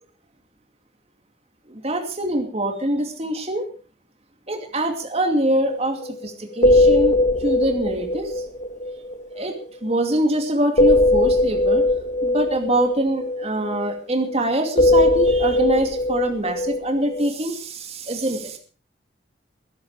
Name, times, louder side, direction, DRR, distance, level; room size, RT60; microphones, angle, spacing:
voice 1, 1.7-3.7 4.5-7.2 7.4-8.3 9.4-9.5 9.8-11.9 12.2-18.6, right 1 dB, 35° right, 4 dB, 2.6 m, -24 dB
sound 1, 5.7-5.8 6.0-6.3 6.5-9.9 10.8-14.4 14.8-17.3, left 2 dB, 45° left, 1.2 m, -20 dB
21.0 x 11.0 x 4.9 m, 0.39 s
head